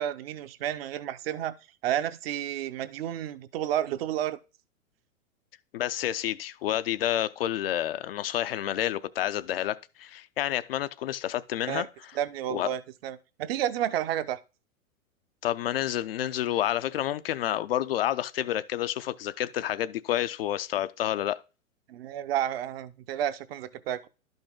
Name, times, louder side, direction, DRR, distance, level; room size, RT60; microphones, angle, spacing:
voice 1, 0.0-1.5 1.8-4.4 11.7-11.9 12.1-14.4 21.9-24.1, right 11 dB, 45° right, 0.7 m, -31 dB
voice 2, 5.7-12.1 12.5-12.7 15.4-21.4, left 12 dB, 45° left, 0.5 m, -29 dB
11.5 x 5.3 x 3.6 m
figure-of-eight pair, 105°, 42 cm